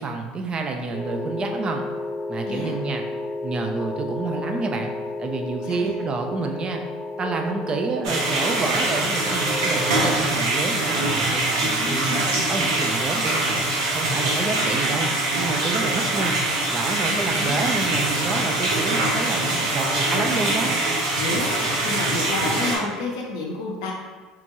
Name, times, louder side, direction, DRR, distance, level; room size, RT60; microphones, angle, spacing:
voice 1, 0.0-1.8 2.3-3.0 3.4-4.9 5.2-6.8 7.2-12.2 12.5-13.6 13.9-15.1 15.3-16.4 16.7-20.8, right 4 dB, 35° right, 3 dB, 0.5 m, -29 dB
sound 1, 0.9-10.2, left 2 dB, 25° left, 0.4 m, -32 dB
voice 2, 5.6-6.0 11.7-12.2 17.1-17.6 20.1-20.4 21.0-23.9, left 3 dB, 80° left, 0 dB, 0.7 m, -31 dB
sound 2, 8.0-22.8, right 2 dB, 90° right, 0.9 m, -23 dB
3.5 x 2.9 x 2.6 m, 1.4 s
hypercardioid pair, 80°, 3 cm